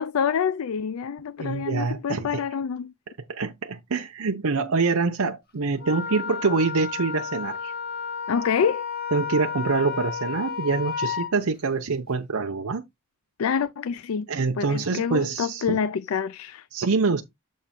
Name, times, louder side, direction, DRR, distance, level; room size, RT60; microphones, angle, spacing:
voice 1, 0.0-2.9 8.3-8.8 13.4-14.3 14.6-16.7, left 7 dB, 70° left, 0.4 m, -27 dB
voice 2, 1.4-2.4 3.3-7.7 9.1-12.8 14.3-15.8 16.7-17.2, right 4 dB, 80° right, 0.7 m, -25 dB
Wind instrument woodwind instrument, 5.8-11.3, left 6 dB, 45° left, 1.1 m, -32 dB
7.5 x 3.0 x 5.8 m
head